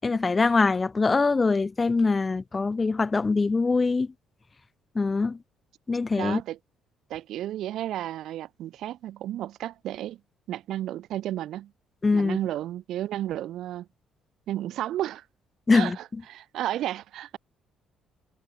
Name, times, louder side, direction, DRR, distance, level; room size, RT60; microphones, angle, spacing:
voice 1, 0.0-4.1 4.9-5.4 5.9-6.4 12.0-12.4 15.7-16.0, left 4 dB, 25° left, 4.8 m, -23 dB
voice 2, 6.2-6.6 7.1-10.2 10.5-11.7 12.1-13.9 14.5-15.2 15.7-17.4, right 13 dB, 75° right, 6.8 m, -32 dB
cardioid pair, 80°, 0 cm